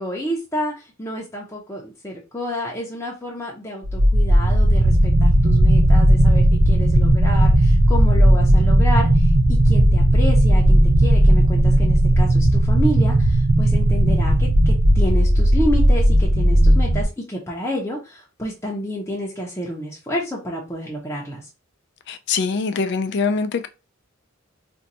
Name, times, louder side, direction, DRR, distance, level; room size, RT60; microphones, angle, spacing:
voice 1, 0.0-21.5, equal, 15° left, 0.6 m, -29 dB
sound 1, 3.8-17.1, right 1 dB, 55° right, 0.6 m, -15 dB
voice 2, 22.1-23.7, left 5 dB, 60° left, 0.4 m, -23 dB
2.6 x 2.3 x 4.0 m
head